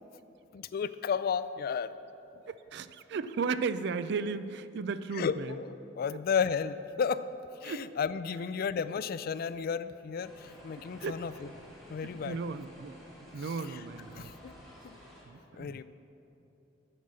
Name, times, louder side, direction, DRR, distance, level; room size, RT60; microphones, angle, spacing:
voice 1, 0.5-1.9 5.2-7.2 7.6-11.5 11.9-12.4 13.7-13.8 14.1-14.5 14.8-14.9 15.5-15.8, left 6 dB, 55° left, 14 dB, 0.3 m, -33 dB
voice 2, 2.5-5.6 7.6-7.9 11.0-11.2 12.0-12.9 13.3-14.3 15.3-15.8, right 5 dB, 65° right, 14 dB, 0.4 m, -35 dB
sound 1, 10.2-15.2, equal, ahead, 2.7 m, -52 dB
9.3 x 7.9 x 6.3 m, 2.9 s
head